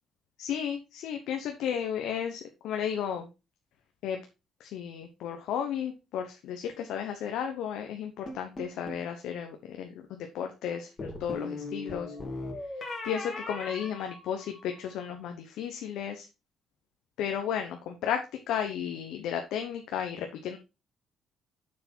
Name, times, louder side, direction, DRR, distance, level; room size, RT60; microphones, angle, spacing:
voice 1, 0.4-3.3 4.0-4.2 4.6-12.1 12.8-16.3 17.2-20.6, left 8 dB, 85° left, 4 dB, 1.0 m, -34 dB
sound 1, 8.3-9.1 11.0-14.8, left 2 dB, 30° left, 2.7 m, -39 dB
7.2 x 6.6 x 4.5 m, 0.28 s
cardioid pair, 125°, 0 cm